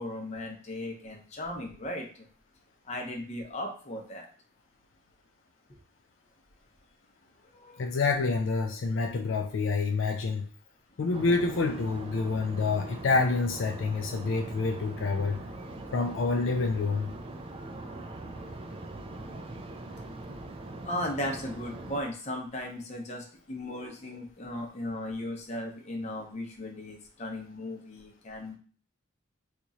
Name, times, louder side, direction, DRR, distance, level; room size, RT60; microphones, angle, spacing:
voice 1, 0.0-2.3 2.9-4.3 7.5-7.9 20.8-28.6, left 1 dB, 35° left, 1 dB, 0.7 m, -36 dB
voice 2, 7.8-10.5 11.0-15.4 15.9-17.1, left 4 dB, 70° left, 3 dB, 0.4 m, -27 dB
sound 1, 11.1-22.0, right 2 dB, 25° right, 0.3 m, -42 dB
2.9 x 2.4 x 4.0 m, 0.42 s
head